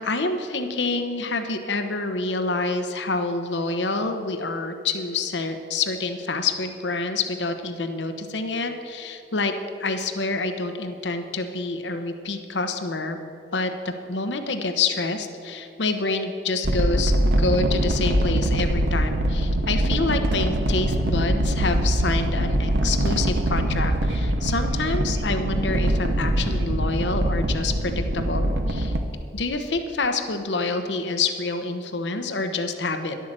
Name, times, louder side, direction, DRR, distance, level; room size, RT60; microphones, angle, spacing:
voice 1, 0.0-9.5 9.8-13.2 13.5-28.9 29.3-33.1, left 3 dB, 85° left, 7 dB, 1.0 m, -27 dB
sound 1, 16.6-29.0, right 1 dB, 75° right, 1.0 m, -23 dB
11.0 x 8.4 x 7.5 m, 2.7 s
head